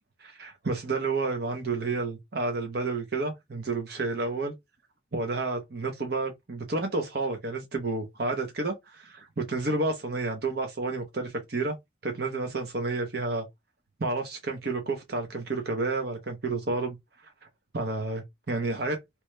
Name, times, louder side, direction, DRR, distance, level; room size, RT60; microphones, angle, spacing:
voice 1, 0.2-4.5 5.1-11.8 12.0-13.4 14.0-17.0 17.7-19.0, right 3 dB, 60° right, 0.9 m, -30 dB
3.2 x 3.0 x 3.1 m
head